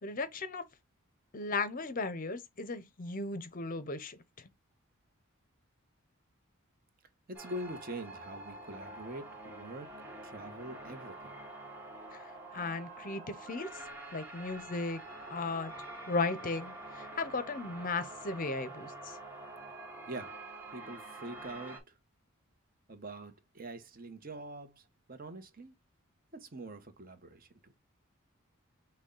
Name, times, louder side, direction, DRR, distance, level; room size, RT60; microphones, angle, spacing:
voice 1, 0.0-0.7 1.3-4.5 12.1-12.2 12.5-13.7 14.1-15.0 15.3-15.7 16.1-19.2, left 3 dB, 40° left, 0.6 m, -36 dB
sound 1, 7.3-21.8, right 2 dB, 10° right, 1.8 m, -47 dB
voice 2, 7.3-9.9 10.2-11.4 20.1-20.4 20.7-22.0 22.9-25.7 26.3-27.7, right 1 dB, 40° right, 0.9 m, -44 dB
6.1 x 2.2 x 3.7 m
head